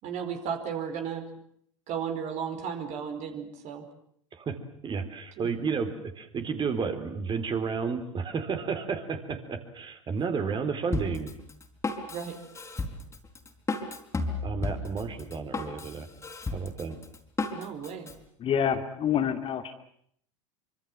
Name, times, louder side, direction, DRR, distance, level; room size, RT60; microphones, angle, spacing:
voice 1, 0.0-1.2 1.9-3.8 5.4-5.5 12.1-12.4 17.5-18.1, right 7 dB, 45° right, 6 dB, 4.8 m, -34 dB
voice 2, 4.8-5.9 6.2-11.3 14.4-16.1 16.5-17.0, right 5 dB, 30° right, 8 dB, 4.1 m, -31 dB
Drum kit, 10.9-18.1, left 3 dB, 15° left, 4.2 m, -34 dB
voice 3, 18.4-19.7, left 8 dB, 35° left, 8 dB, 2.5 m, -27 dB
25.5 x 25.0 x 7.6 m, 0.67 s
hypercardioid pair, 85°, 17 cm